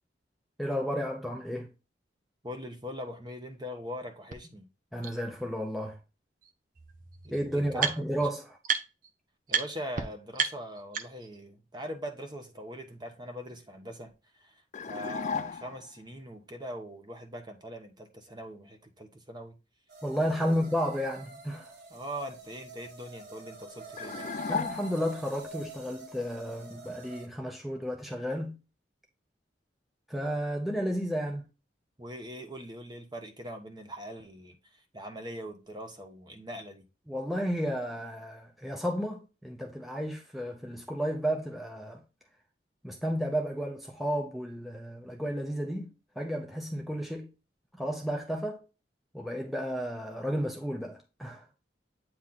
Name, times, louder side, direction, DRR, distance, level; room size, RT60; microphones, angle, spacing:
voice 1, 0.6-1.7 4.9-6.0 7.3-8.6 20.0-21.7 24.5-28.6 30.1-31.4 37.1-42.0 42.8-45.9 46.2-47.3 47.7-48.6 49.1-51.5, equal, ahead, 0.7 m, -32 dB
voice 2, 2.4-4.7 7.2-8.3 9.5-19.6 20.4-20.6 21.9-24.3 32.0-36.8, equal, 25° right, 1.0 m, -42 dB
sound 1, 4.3-4.4 5.0-5.1 6.4-6.5 6.7-8.3 8.6-9.1 9.5-9.6 9.9-10.0 10.3-11.4, right 6 dB, 50° right, 0.7 m, -32 dB
sound 2, 14.7-15.9 24.0-25.3, left 5 dB, 40° left, 0.3 m, -35 dB
sound 3, 19.9-27.3, right 3 dB, 65° right, 1.4 m, -47 dB
8.6 x 3.1 x 3.9 m
head